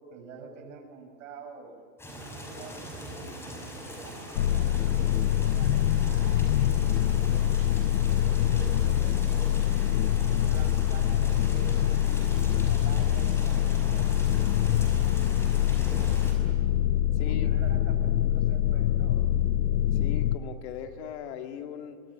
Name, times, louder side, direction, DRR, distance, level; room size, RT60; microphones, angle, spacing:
voice 1, 0.0-1.8 2.5-9.6 10.3-14.9 15.7-16.6 17.2-19.3, right 4 dB, 65° right, 5 dB, 6.4 m, -47 dB
sound 1, 2.0-16.3, equal, 5° left, 5.7 m, -42 dB
sound 2, 4.4-20.4, left 11 dB, 85° left, 1.0 m, -24 dB
voice 2, 17.1-17.5 19.9-22.0, left 9 dB, 50° left, 5 dB, 2.3 m, -39 dB
24.0 x 21.5 x 9.9 m, 2.1 s
supercardioid pair, 150°, 42 cm